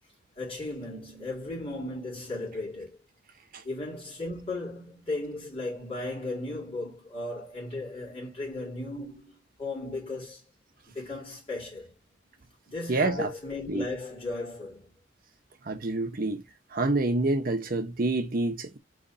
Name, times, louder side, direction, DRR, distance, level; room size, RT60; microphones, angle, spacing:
voice 1, 0.4-3.0 3.6-10.4 10.9-11.9 12.7-14.9, left 2 dB, 30° left, 2.7 m, -36 dB
voice 2, 12.9-13.3 13.7-13.9 15.7-16.4 16.7-18.8, right 2 dB, 45° right, 0.8 m, -27 dB
3.9 x 3.2 x 4.0 m
head